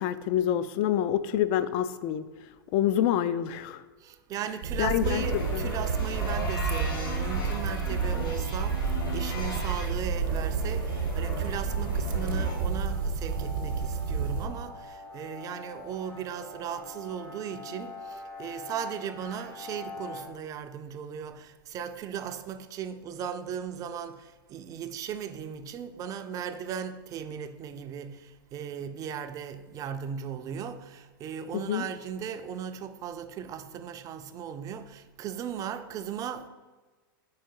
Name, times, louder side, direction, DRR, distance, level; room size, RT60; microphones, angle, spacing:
voice 1, 0.0-2.2 2.7-3.8 4.8-5.2 5.5-5.7 31.5-31.8, left 11 dB, 45° left, 0.4 m, -27 dB
voice 2, 4.0-36.5, right 8 dB, 30° right, 0.4 m, -37 dB
sound 1, 4.6-14.5, right 5 dB, 70° right, 0.8 m, -30 dB
sound 2, 5.0-20.2, left 2 dB, 80° left, 1.6 m, -40 dB
4.7 x 4.3 x 4.6 m
hypercardioid pair, 110°, 12 cm